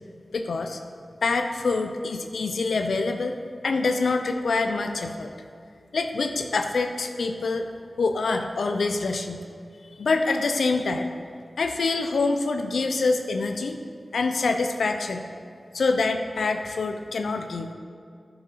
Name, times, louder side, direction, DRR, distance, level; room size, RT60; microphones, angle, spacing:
voice 1, 0.3-0.8 1.2-3.4 3.6-5.3 5.9-7.7 8.0-9.4 10.0-11.1 11.6-13.8 14.1-15.3 15.7-17.7, left 3 dB, 90° left, 6 dB, 0.5 m, -25 dB
10.0 x 6.9 x 4.1 m, 2.3 s
wide cardioid pair, 70°, 0 cm